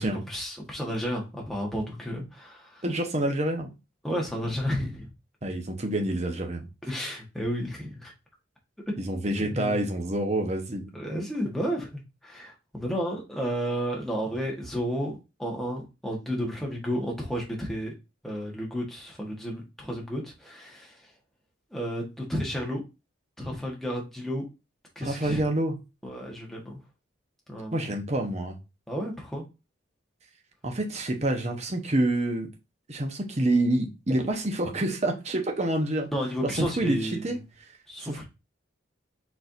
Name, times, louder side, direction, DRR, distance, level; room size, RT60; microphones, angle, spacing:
voice 1, 0.3-2.8 4.0-5.1 6.9-8.1 8.9-9.0 9.3-9.8 10.9-17.9 18.2-21.0 21.7-22.8 23.4-24.4 24.9-25.4 26.0-26.8 27.5-27.9 28.9-29.4 36.1-37.3 37.9-38.2, equal, ahead, 1.2 m, -32 dB
voice 2, 2.8-3.7 5.4-6.7 9.0-10.9 25.0-25.7 27.7-28.6 30.6-32.5 32.9-36.1 36.4-37.4 38.0-38.2, right 1 dB, 35° right, 0.9 m, -27 dB
4.3 x 4.2 x 2.5 m
head